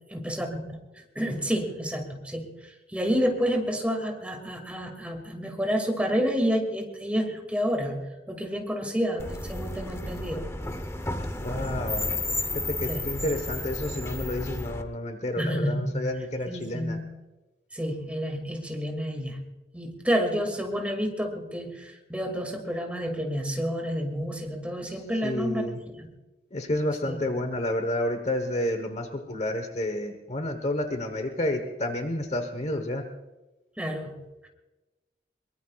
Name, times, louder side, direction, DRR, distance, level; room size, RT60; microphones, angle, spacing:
voice 1, 0.1-10.5 12.9-13.1 15.4-16.0 16.5-17.1 17.7-19.5 19.7-25.7 26.0-26.1 27.0-27.2 33.8-34.5, equal, 10° right, 3 dB, 2.3 m, -29 dB
sound 1, 9.2-14.8, left 2 dB, 15° left, 0.9 m, -32 dB
voice 2, 11.4-12.2 12.5-17.0 25.2-25.8 26.5-33.0, left 1 dB, 40° left, 7 dB, 1.2 m, -30 dB
23.0 x 21.5 x 2.4 m, 1.1 s
head